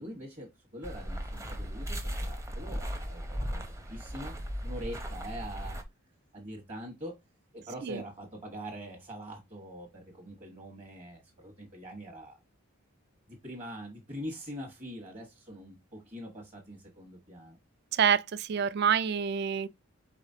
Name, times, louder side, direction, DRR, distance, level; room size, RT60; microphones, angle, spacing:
voice 1, 0.0-3.6 3.9-4.3 4.6-5.8 6.3-7.2 7.5-12.4 13.3-17.6, equal, 35° right, 1.2 m, -43 dB
sound 1, 0.8-5.8, equal, 15° right, 0.7 m, -37 dB
voice 2, 17.9-19.7, right 7 dB, 50° right, 0.4 m, -27 dB
4.9 x 4.0 x 2.7 m
head